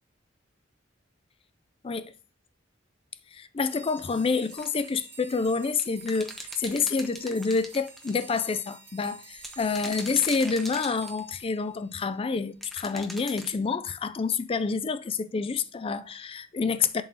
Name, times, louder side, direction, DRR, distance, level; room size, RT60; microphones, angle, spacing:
voice 1, 3.3-6.3 6.6-17.0, left 4 dB, 30° left, 0.4 m, -28 dB
sound 1, 3.6-12.2, right 5 dB, 35° right, 3.3 m, -49 dB
sound 2, 4.5-4.9 5.7-8.2 9.4-11.4 12.6-13.5, equal, ahead, 0.8 m, -41 dB
11.0 x 3.8 x 2.8 m
head